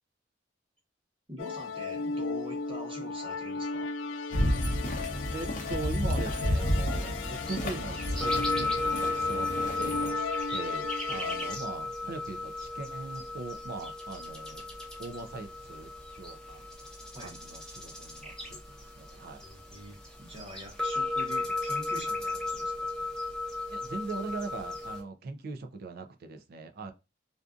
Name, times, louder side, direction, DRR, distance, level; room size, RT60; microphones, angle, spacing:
voice 1, 1.3-3.9 11.1-11.3 17.1-17.4 19.4-22.9, equal, 30° right, 1.0 m, -45 dB
sound 1, 1.4-11.6, left 4 dB, 85° left, 0.3 m, -37 dB
sound 2, 4.3-10.1, left 1 dB, 45° left, 0.7 m, -31 dB
voice 2, 5.3-9.5 9.8-14.7 15.0-15.9 16.2-16.6 17.2-19.5 23.7-26.9, right 3 dB, 55° right, 0.4 m, -40 dB
sound 3, 6.3-25.0, left 2 dB, 5° left, 0.7 m, -35 dB
2.5 x 2.3 x 2.4 m
head